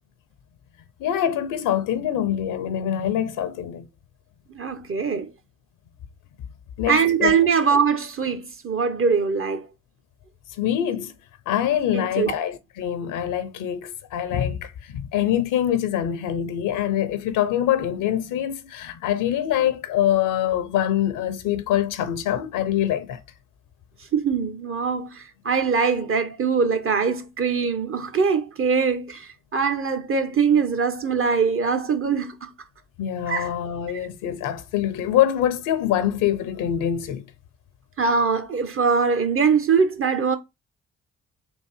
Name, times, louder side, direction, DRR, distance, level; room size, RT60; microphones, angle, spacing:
voice 1, 1.0-3.9 6.8-7.3 10.6-11.1 11.5-23.2 33.0-37.2, left 10 dB, 85° left, 0.6 m, -24 dB
voice 2, 4.5-5.3 6.9-9.7 11.9-12.3 24.1-32.5 33.3-33.5 33.9-34.1 38.0-40.4, right 5 dB, 45° right, 0.9 m, -22 dB
3.7 x 2.6 x 4.5 m
supercardioid pair, 45°, 31 cm